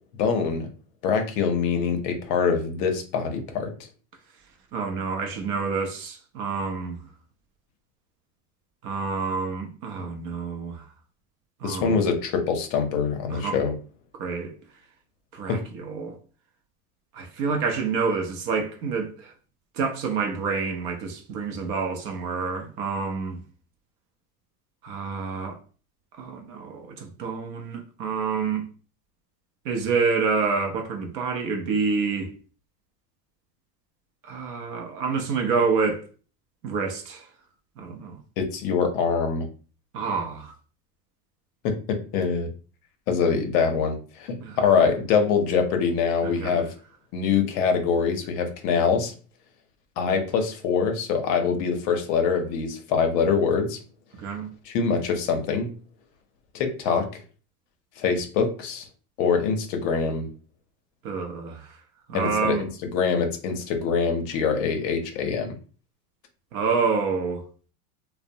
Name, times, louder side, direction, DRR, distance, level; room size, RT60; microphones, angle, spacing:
voice 1, 0.2-0.7 1.0-3.7 11.6-13.7 15.5-15.6 38.4-39.5 41.6-42.5 43.1-46.7 47.1-49.1 50.0-53.8 54.6-55.7 56.5-57.1 58.0-58.9 59.2-60.3 62.1-65.5, left 5 dB, 55° left, 0.6 m, -24 dB
voice 2, 4.7-7.0 8.8-10.8 11.6-12.0 13.3-13.6 14.2-14.5 15.3-16.1 17.1-19.3 19.8-23.4 24.8-25.6 26.2-28.7 29.6-32.3 34.2-36.0 36.6-37.3 37.8-38.2 39.9-40.5 44.4-44.6 46.2-46.7 54.2-54.5 61.0-61.8 62.1-62.6 66.5-67.4, right 5 dB, 40° right, 0.5 m, -28 dB
2.5 x 2.0 x 2.7 m
supercardioid pair, 130°, 46 cm